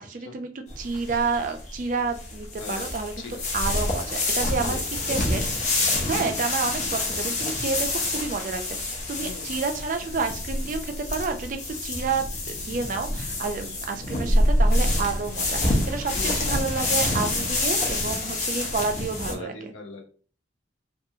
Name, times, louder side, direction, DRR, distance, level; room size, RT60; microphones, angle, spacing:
voice 1, 0.0-3.3 3.5-4.8 5.1-5.4 6.0-8.6 9.1-19.5, right 4 dB, 40° right, 6 dB, 0.3 m, -30 dB
sound 1, 0.7-19.3, left 1 dB, 40° left, 0.6 m, -27 dB
voice 2, 2.6-2.9 3.2-3.4 4.6-4.9 9.2-9.5 16.1-16.6 19.3-20.1, left 3 dB, 90° left, 5 dB, 0.6 m, -39 dB
2.8 x 2.3 x 2.6 m, 0.41 s
head